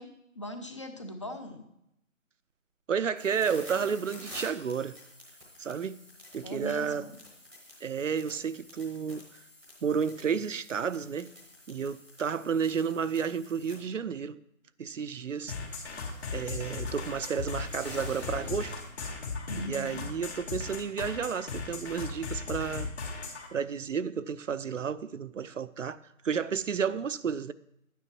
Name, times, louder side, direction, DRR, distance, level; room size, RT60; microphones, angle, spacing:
voice 1, 0.0-1.6 6.4-7.2 19.5-20.0, equal, 20° left, 0.7 m, -40 dB
voice 2, 2.9-5.0 5.6-6.0 6.3-7.1 7.8-9.2 9.8-11.3 11.7-14.4 14.8-15.6 16.3-18.7 19.6-22.9 23.5-26.0 26.2-27.5, right 6 dB, 65° right, 0.7 m, -31 dB
sound 1, 3.2-13.7 15.2-18.9, left 1 dB, 5° left, 1.0 m, -49 dB
sound 2, 15.5-23.5, left 4 dB, 50° left, 2.4 m, -37 dB
12.0 x 9.3 x 4.6 m
figure-of-eight pair, 160°, 41 cm